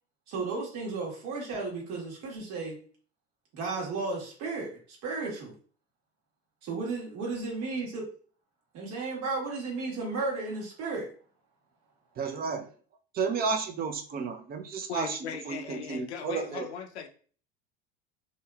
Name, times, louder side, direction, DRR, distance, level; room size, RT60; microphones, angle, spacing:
voice 1, 0.3-2.8 3.5-4.7 5.0-5.5 6.6-8.1 8.7-11.1, right 3 dB, 55° right, -2 dB, 1.3 m, -34 dB
voice 2, 12.2-12.7 13.1-15.2 15.5-16.6, right 5 dB, 30° right, 6 dB, 0.5 m, -32 dB
voice 3, 14.9-17.1, left 7 dB, 90° left, 6 dB, 0.5 m, -38 dB
2.7 x 2.5 x 2.2 m, 0.42 s
hypercardioid pair, 80°, 32 cm